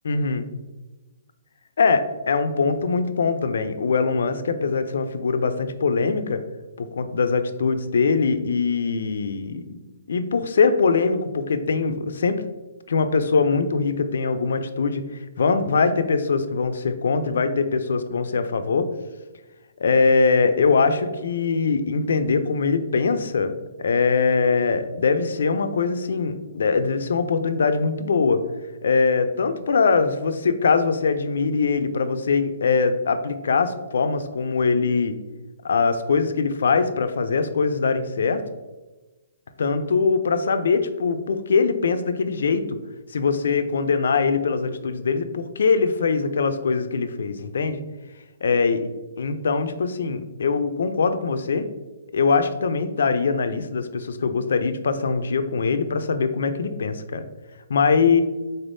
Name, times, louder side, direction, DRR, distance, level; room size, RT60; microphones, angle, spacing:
voice 1, 0.0-0.5 1.8-6.4 6.8-12.4 12.9-15.0 15.4-18.9 19.8-28.4 28.8-35.2 35.6-38.4 39.6-42.8 43.1-47.8 48.4-48.8 49.2-51.7 52.1-57.3 57.7-58.2, left 4 dB, 75° left, 10 dB, 0.3 m, -22 dB
3.9 x 3.4 x 2.6 m, 1.2 s
hypercardioid pair, 165°, 0 cm